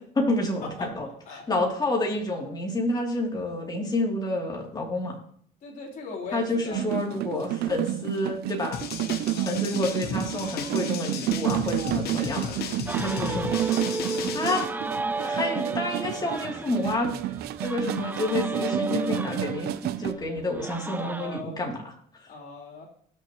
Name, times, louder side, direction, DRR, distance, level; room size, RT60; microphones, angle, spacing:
voice 1, 0.2-1.1 1.5-5.1 6.3-8.8 9.4-12.7 13.0-13.5 14.3-14.6 15.2-17.1 17.6-19.7 20.0-21.8, left 2 dB, 25° left, 0 dB, 2.9 m, -29 dB
voice 2, 5.6-6.8 9.3-9.6 20.9-21.6 22.3-22.9, left 4 dB, 50° left, -3 dB, 3.5 m, -39 dB
sound 1, 6.7-20.1, right 14 dB, 70° right, 0.5 m, -30 dB
sound 2, 8.7-14.6, left 7 dB, 70° left, 1.2 m, -35 dB
sound 3, 12.9-21.4, right 3 dB, 10° right, 0.3 m, -33 dB
19.5 x 6.8 x 3.0 m, 0.63 s
cardioid pair, 110°, 17 cm